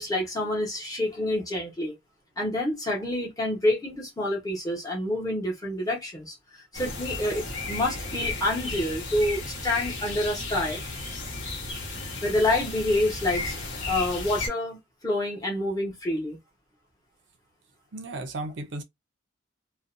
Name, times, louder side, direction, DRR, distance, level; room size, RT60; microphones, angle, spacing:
voice 1, 0.0-1.9 2.4-6.3 6.7-10.8 12.0-13.6 13.8-14.8 15.0-16.4, left 1 dB, 20° left, 0.9 m, -27 dB
sound 1, 6.7-14.5, left 3 dB, 60° left, 1.2 m, -34 dB
voice 2, 17.9-18.8, right 2 dB, 65° right, 0.5 m, -34 dB
2.5 x 2.1 x 2.5 m
head